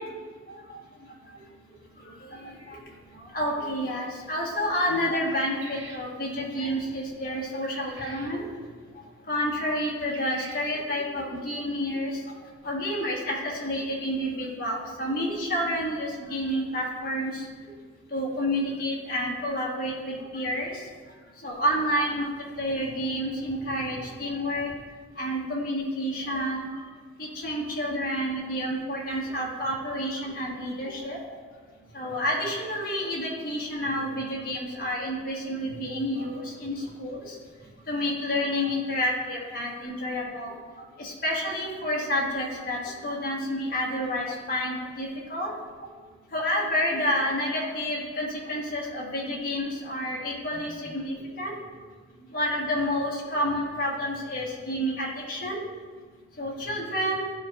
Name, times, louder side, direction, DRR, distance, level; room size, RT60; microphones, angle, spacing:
voice 1, 2.4-2.8 3.3-8.4 9.3-12.2 12.6-17.4 18.1-20.7 21.4-22.3 22.6-24.7 25.2-26.7 27.2-31.2 31.9-37.3 37.9-40.5 41.0-45.5 46.3-51.5 52.3-55.6 56.4-57.2, equal, 45° left, -3 dB, 1.2 m, -29 dB
sound 1, 5.3-6.1 7.6-8.3 10.0-10.7, right 3 dB, 65° right, 0.9 m, -45 dB
12.5 x 4.1 x 2.4 m, 1.5 s
head